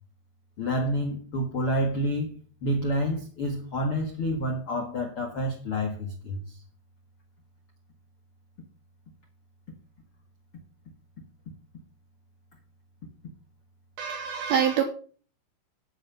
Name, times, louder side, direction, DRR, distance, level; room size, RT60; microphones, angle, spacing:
voice 1, 0.6-6.6, equal, 60° left, 1.4 m, -29 dB
voice 2, 14.0-14.8, right 8 dB, 70° right, 2.4 m, -25 dB
11.0 x 8.1 x 5.5 m
omnidirectional pair, 5.4 m